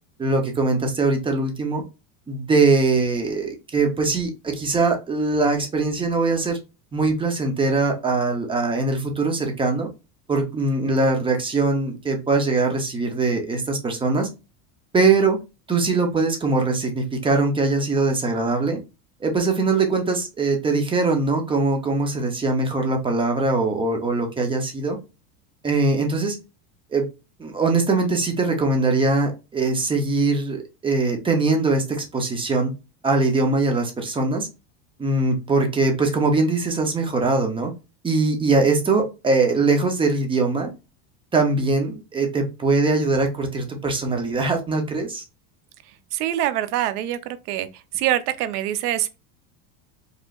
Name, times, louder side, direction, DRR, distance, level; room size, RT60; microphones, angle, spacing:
voice 1, 0.2-1.8 2.3-6.6 6.9-9.9 10.3-14.3 14.9-15.4 15.7-18.8 19.2-25.0 25.6-26.4 26.9-27.1 27.4-32.7 33.0-34.5 35.0-37.7 38.0-40.7 41.3-45.2, right 3 dB, 10° right, 0.6 m, -22 dB
voice 2, 46.1-47.7 47.9-49.2, right 12 dB, 85° right, 0.8 m, -24 dB
5.0 x 3.1 x 2.3 m
cardioid pair, 160°, 45 cm